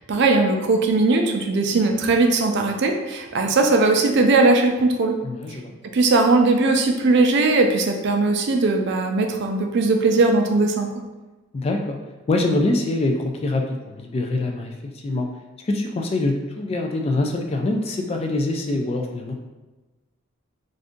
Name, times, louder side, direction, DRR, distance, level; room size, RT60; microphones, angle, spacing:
voice 1, 0.0-5.1 5.9-10.9, right 3 dB, 60° right, 4 dB, 0.4 m, -19 dB
voice 2, 5.2-5.7 11.5-12.0 12.3-15.3 15.6-19.3, left 2 dB, 30° left, 3 dB, 0.3 m, -24 dB
2.6 x 2.5 x 3.6 m, 1.2 s
head